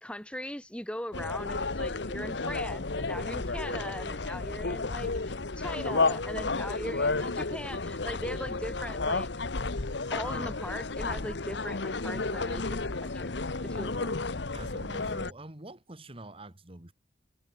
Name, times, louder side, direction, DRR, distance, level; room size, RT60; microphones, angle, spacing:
voice 1, 0.0-5.1 5.6-9.3 10.1-14.2, left 1 dB, 5° left, 2.7 m, -39 dB
sound 1, 1.1-15.3, left 3 dB, 60° left, 1.1 m, -32 dB
voice 2, 14.5-16.9, right 1 dB, 30° right, 1.8 m, -46 dB
head